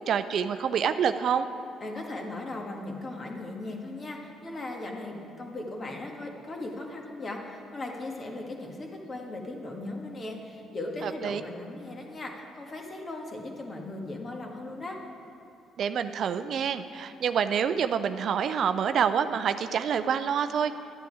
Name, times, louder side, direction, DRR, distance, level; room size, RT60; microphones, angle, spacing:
voice 1, 0.1-1.5 11.0-11.4 15.8-20.7, right 7 dB, 60° right, 11 dB, 0.4 m, -27 dB
voice 2, 1.8-15.0, left 2 dB, 35° left, 1 dB, 1.8 m, -38 dB
11.5 x 10.0 x 4.8 m, 2.6 s
hypercardioid pair, 50°, 0 cm